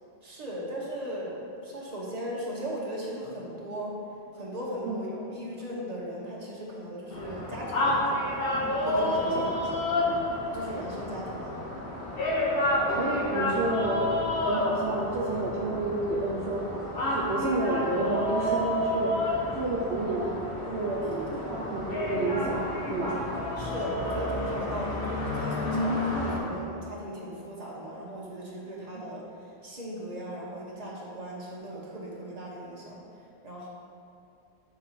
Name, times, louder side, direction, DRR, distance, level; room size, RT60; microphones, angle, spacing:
voice 1, 0.2-4.0 4.3-8.0 8.8-9.9 10.5-11.6 21.0-21.5 23.6-33.0 33.4-33.7, equal, 40° right, -5 dB, 1.3 m, -37 dB
sound 1, 7.1-26.4, left 1 dB, 60° left, 1.3 m, -30 dB
voice 2, 12.9-14.1 14.5-16.6 17.0-19.1 19.5-20.4 20.7-21.0 21.5-23.2 29.0-29.1, right 2 dB, 75° right, -3 dB, 1.0 m, -30 dB
6.3 x 4.0 x 5.8 m, 2.6 s
omnidirectional pair, 1.1 m